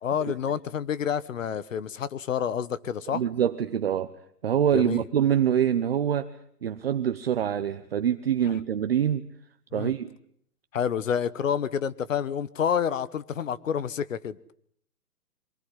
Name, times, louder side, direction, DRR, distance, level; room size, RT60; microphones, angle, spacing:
voice 1, 0.0-3.2 4.7-5.0 9.7-9.9 10.7-14.4, left 8 dB, 55° left, 18 dB, 1.2 m, -28 dB
voice 2, 3.1-4.1 4.4-9.2 9.7-10.1, right 9 dB, 40° right, 9 dB, 0.9 m, -25 dB
23.5 x 18.0 x 9.8 m, 0.67 s
hypercardioid pair, 170°, 47 cm